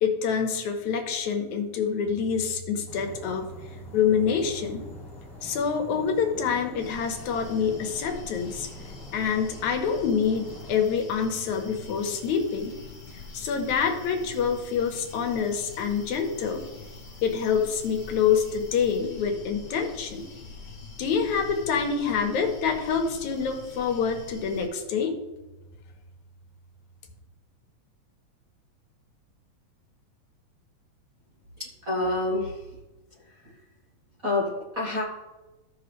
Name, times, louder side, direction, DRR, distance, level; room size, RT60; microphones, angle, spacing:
voice 1, 0.0-4.9 5.4-12.7 13.1-16.7 17.2-20.3 21.0-25.2, left 6 dB, 75° left, 4 dB, 2.3 m, -26 dB
sound 1, 2.9-10.8, left 1 dB, 10° left, 2.7 m, -46 dB
sound 2, 6.8-24.7, left 4 dB, 40° left, 0.8 m, -45 dB
voice 2, 31.6-32.7 33.1-33.6 34.2-35.0, left 2 dB, 45° right, -5 dB, 1.1 m, -28 dB
14.5 x 6.0 x 3.2 m, 1.1 s
omnidirectional pair, 3.5 m